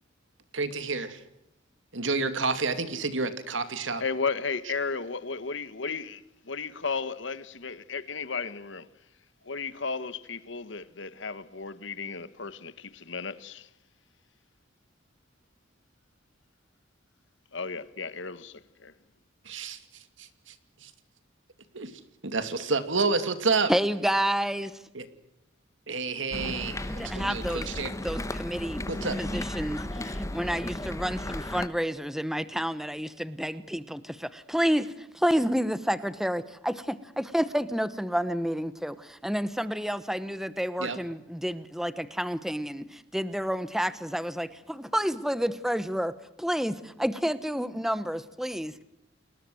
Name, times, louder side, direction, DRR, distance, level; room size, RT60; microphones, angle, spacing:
voice 1, 0.5-1.2 1.9-4.0 19.4-20.9 21.7-23.7 24.9-25.1 25.9-27.9 28.9-29.2 40.8-41.0, right 4 dB, 75° right, 2.4 m, -30 dB
voice 2, 4.0-8.9 9.4-13.7 17.5-18.9, left 4 dB, 70° left, 1.3 m, -34 dB
voice 3, 23.7-24.8 27.0-27.7 28.0-28.9 29.2-48.8, equal, ahead, 1.0 m, -30 dB
sound 1, 26.3-31.7, left 1 dB, 15° left, 1.0 m, -34 dB
30.0 x 21.0 x 7.8 m
head